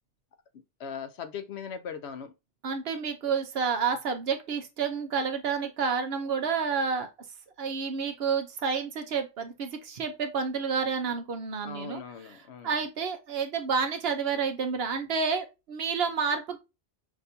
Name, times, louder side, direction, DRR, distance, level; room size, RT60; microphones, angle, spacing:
voice 1, 0.8-2.3 11.6-12.8, left 7 dB, 70° left, 0.8 m, -39 dB
voice 2, 2.6-7.1 7.6-12.0 12.6-16.6, right 5 dB, 60° right, 0.9 m, -29 dB
6.1 x 2.6 x 2.6 m
omnidirectional pair, 1.2 m